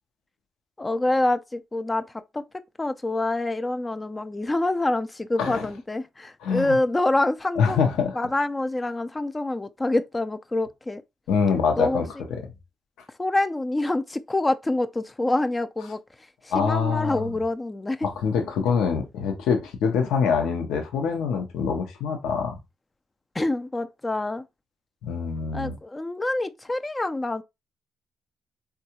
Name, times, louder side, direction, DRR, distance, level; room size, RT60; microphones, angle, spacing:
voice 1, 0.8-2.1 2.3-2.4 2.8-7.8 8.1-11.0 11.8-12.0 12.3-12.4 13.2-16.0 16.4-18.1 23.3-24.4 25.5-27.4, left 2 dB, 20° left, 0.4 m, -26 dB
voice 2, 6.4-6.8 7.6-8.2 11.3-12.1 16.5-17.3 18.0-22.5 25.0-25.8, left 6 dB, 85° left, 0.7 m, -24 dB
3.5 x 2.3 x 2.8 m
cardioid pair, 75°, 0 cm